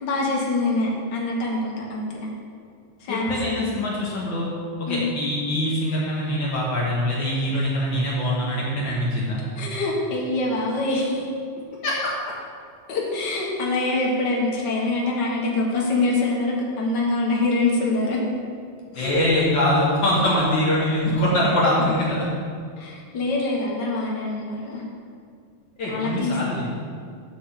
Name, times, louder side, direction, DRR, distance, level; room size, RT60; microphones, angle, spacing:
voice 1, 0.0-2.3 3.0-3.7 4.9-5.1 9.6-11.3 12.9-18.2 18.9-19.1 22.8-24.8 25.9-26.4, left 2 dB, 60° left, -3 dB, 1.1 m, -25 dB
voice 2, 3.1-4.5 4.8-9.4 11.8-12.1 18.9-22.3 25.8-26.7, left 1 dB, 75° left, -6 dB, 1.0 m, -23 dB
7.7 x 5.1 x 7.2 m, 2.2 s
omnidirectional pair, 4.0 m